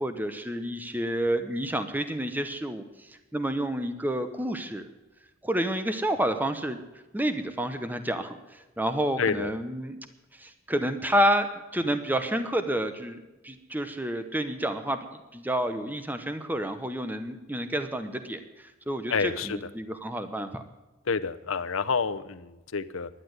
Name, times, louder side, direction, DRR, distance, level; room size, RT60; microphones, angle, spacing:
voice 1, 0.0-4.9 5.4-6.8 7.1-10.0 10.3-15.0 15.3-20.6, right 1 dB, 10° right, 9 dB, 0.8 m, -29 dB
voice 2, 9.2-9.5 19.1-19.6 21.1-23.1, left 5 dB, 80° left, 12 dB, 0.7 m, -28 dB
11.5 x 10.0 x 7.8 m, 1.1 s
head